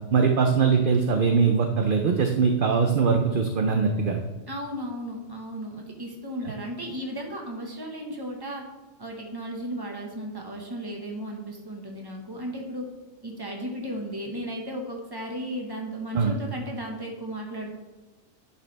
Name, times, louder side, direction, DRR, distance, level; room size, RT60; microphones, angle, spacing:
voice 1, 0.1-4.2 16.1-16.4, right 5 dB, 50° right, 4 dB, 0.7 m, -22 dB
voice 2, 4.5-8.6 9.0-12.9 13.2-17.7, equal, 20° right, 0 dB, 1.4 m, -35 dB
10.5 x 5.7 x 3.4 m, 1.2 s
omnidirectional pair, 1.3 m